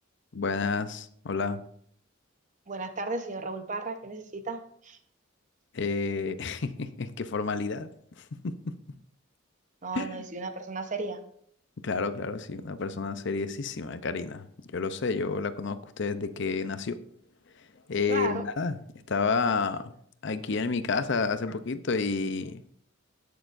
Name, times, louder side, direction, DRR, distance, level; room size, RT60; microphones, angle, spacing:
voice 1, 0.3-1.6 5.7-7.9 8.2-8.8 9.9-10.2 11.8-14.5 14.7-17.0 17.9-18.8 19.1-19.9 20.2-22.6, left 4 dB, 60° left, 12 dB, 0.6 m, -30 dB
voice 2, 2.7-5.0 9.8-11.2 18.1-18.4, right 3 dB, 40° right, 8 dB, 0.9 m, -34 dB
19.0 x 6.7 x 2.6 m, 0.65 s
head